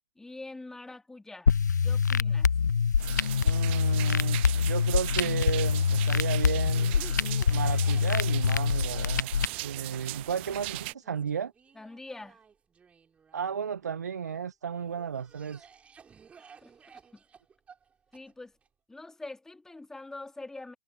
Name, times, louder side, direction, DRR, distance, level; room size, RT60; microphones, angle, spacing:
voice 1, 0.2-1.5 1.8-2.5 11.7-12.4 16.4-16.7 17.1-17.2 18.1-18.6 18.9-20.8, left 2 dB, 5° left, 3.6 m, -44 dB
sound 1, 1.5-9.5, left 6 dB, 65° left, 0.8 m, -25 dB
sound 2, 3.0-10.9, right 22 dB, 35° right, 1.2 m, -39 dB
voice 2, 3.4-7.0 7.5-9.3 9.6-11.5 13.3-15.6, right 7 dB, 60° right, 1.2 m, -33 dB
Cough, 4.9-14.2 14.7-18.7, right 6 dB, 10° right, 6.6 m, -56 dB
figure-of-eight pair, 115°, 10 cm